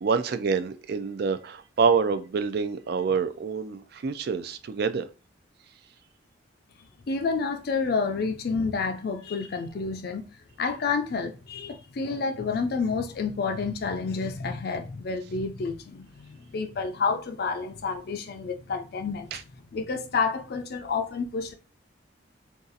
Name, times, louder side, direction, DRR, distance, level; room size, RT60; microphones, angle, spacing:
voice 1, 0.0-5.1 19.3-19.4, right 5 dB, 55° right, 0.3 m, -26 dB
voice 2, 7.1-10.2 10.6-19.4 19.7-21.5, left 4 dB, 55° left, 0.4 m, -29 dB
2.6 x 2.4 x 3.9 m
head